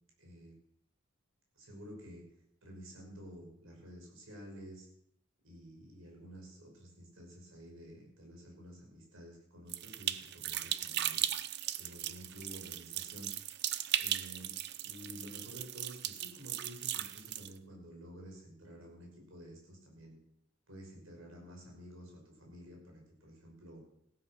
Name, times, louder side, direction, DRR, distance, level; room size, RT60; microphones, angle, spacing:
voice 1, 0.2-0.5 1.5-2.2 2.6-4.9 5.4-11.2 11.7-13.3 14.0-14.5 14.8-20.2 20.7-23.8, equal, 80° right, 0 dB, 5.8 m, -51 dB
sound 1, 9.7-17.5, right 12 dB, 55° right, 0.6 m, -37 dB
15.5 x 12.5 x 6.3 m, 0.77 s
head